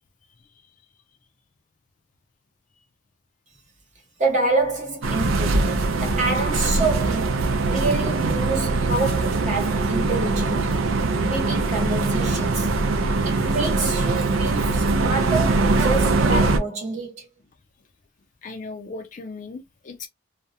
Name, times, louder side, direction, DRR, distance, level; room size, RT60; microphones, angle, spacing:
voice 1, 4.2-10.8 11.2-12.7 13.2-17.3, right 3 dB, 40° right, 1.0 m, -27 dB
sound 1, 5.0-16.6, right 3 dB, 90° right, 0.4 m, -22 dB
voice 2, 18.4-20.1, left 3 dB, 40° left, 0.4 m, -37 dB
2.4 x 2.0 x 2.7 m
head